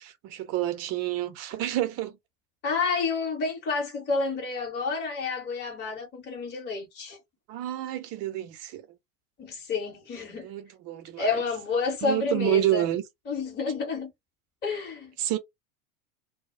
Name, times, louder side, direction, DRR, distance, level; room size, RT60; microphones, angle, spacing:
voice 1, 0.0-2.2 7.5-8.9 10.3-11.4 12.0-13.0 15.2-15.4, right 13 dB, 35° right, 0.6 m, -29 dB
voice 2, 2.6-7.2 9.4-10.5 11.2-12.9 13.3-14.1 14.6-15.1, left 4 dB, 25° left, 1.0 m, -29 dB
2.2 x 2.1 x 3.6 m
figure-of-eight pair, 85°, 43 cm